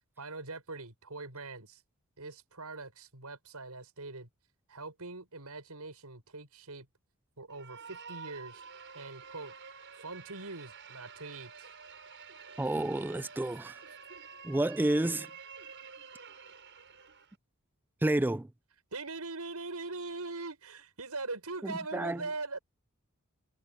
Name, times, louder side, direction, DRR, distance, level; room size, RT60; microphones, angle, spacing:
voice 1, 0.2-1.8 2.2-4.3 4.7-6.9 7.4-8.6 8.9-9.5 10.0-11.7 18.9-22.6, right 3 dB, 85° right, 6.5 m, -42 dB
sound 1, 7.5-17.4, right 6 dB, 55° right, 6.4 m, -49 dB
voice 2, 12.6-13.8 14.4-15.3 18.0-18.5 21.6-22.2, right 1 dB, 10° right, 0.3 m, -30 dB
head